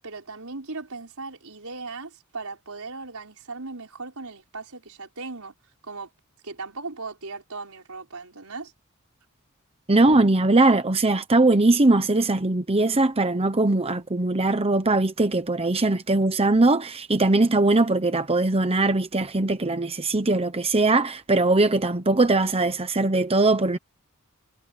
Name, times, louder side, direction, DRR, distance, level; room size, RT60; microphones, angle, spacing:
voice 1, 0.0-5.5 5.8-6.1 6.4-8.7, right 3 dB, 85° right, 4.9 m, -37 dB
voice 2, 9.9-23.8, right 2 dB, 25° right, 1.0 m, -21 dB
head